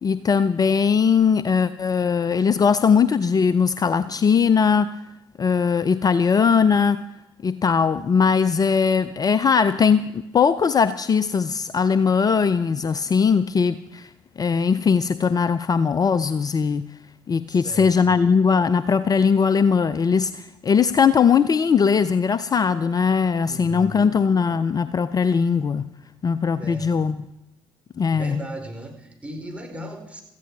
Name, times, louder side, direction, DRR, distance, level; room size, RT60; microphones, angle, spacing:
voice 1, 0.0-4.9 5.4-7.0 7.4-14.1 14.4-16.8 17.3-25.8 26.2-27.3 28.0-28.4, left 6 dB, 30° left, 15 dB, 0.6 m, -20 dB
voice 2, 17.5-18.2 23.5-24.1 26.6-27.1 28.1-30.2, equal, 10° right, 2 dB, 4.5 m, -36 dB
17.0 x 14.5 x 4.8 m, 0.90 s
hypercardioid pair, 55°, 12 cm